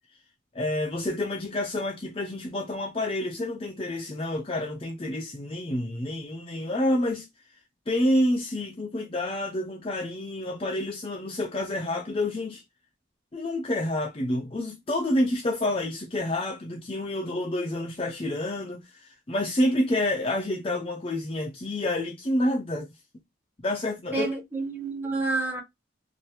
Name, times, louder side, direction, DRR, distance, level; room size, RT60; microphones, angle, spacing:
voice 1, 0.5-7.3 7.9-12.6 13.3-18.9 19.3-22.9 23.6-24.3, left 1 dB, 30° left, 0.5 m, -28 dB
voice 2, 24.1-25.6, right 3 dB, 10° right, 1.2 m, -29 dB
2.8 x 2.5 x 3.1 m
head